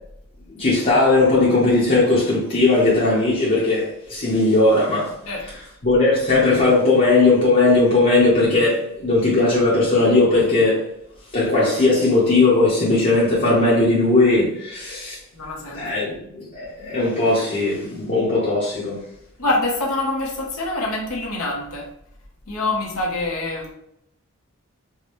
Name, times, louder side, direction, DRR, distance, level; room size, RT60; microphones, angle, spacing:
voice 1, 0.5-5.1 5.8-10.9 11.3-15.2 15.8-19.0, left 2 dB, 35° left, -7 dB, 0.9 m, -18 dB
voice 2, 15.3-15.9 19.4-21.9 22.5-23.7, left 2 dB, 80° left, -3 dB, 1.0 m, -25 dB
4.7 x 2.3 x 3.0 m, 0.77 s
head